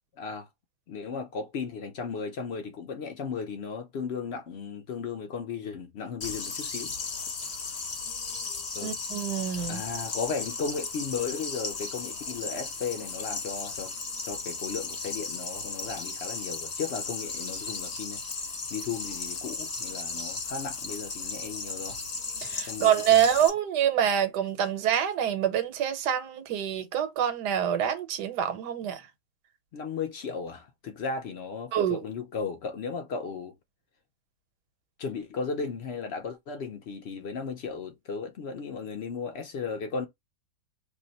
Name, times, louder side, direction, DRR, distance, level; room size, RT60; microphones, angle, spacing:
voice 1, 0.2-0.5 0.9-7.0 8.7-9.0 9.7-13.9 14.3-18.2 18.7-22.0 22.6-23.2 29.7-33.6 35.0-40.1, left 5 dB, 70° left, 0.6 m, -35 dB
sound 1, 6.2-23.5, left 4 dB, 50° left, 1.0 m, -36 dB
voice 2, 8.8-9.8 22.4-29.0 31.7-32.0, right 9 dB, 85° right, 1.3 m, -26 dB
2.7 x 2.1 x 3.8 m
omnidirectional pair, 1.7 m